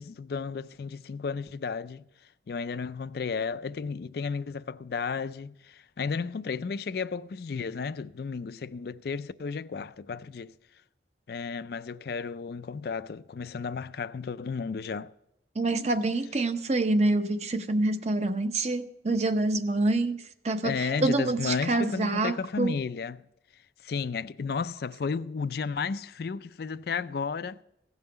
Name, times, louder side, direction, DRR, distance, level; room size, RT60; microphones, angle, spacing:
voice 1, 0.0-2.0 2.5-10.5 11.3-15.1 20.6-23.2 23.8-27.6, left 5 dB, 55° left, 0.4 m, -33 dB
voice 2, 15.6-22.8, right 2 dB, 35° right, 0.7 m, -27 dB
16.0 x 5.5 x 7.9 m
head